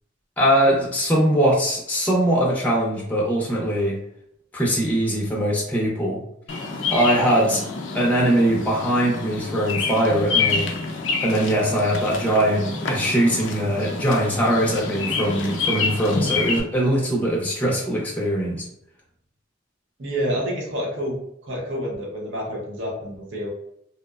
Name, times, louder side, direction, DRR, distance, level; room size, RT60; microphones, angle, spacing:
voice 1, 0.4-4.0 4.5-6.2 6.9-7.6 7.9-10.7 11.2-18.6, right 1 dB, 10° left, -4 dB, 0.5 m, -21 dB
Bird vocalization bird call bird song, 6.5-16.6, left 4 dB, 70° left, 0.4 m, -28 dB
voice 2, 20.0-21.2 21.4-23.5, equal, 70° right, -3 dB, 0.7 m, -28 dB
2.7 x 2.0 x 2.3 m, 0.75 s
head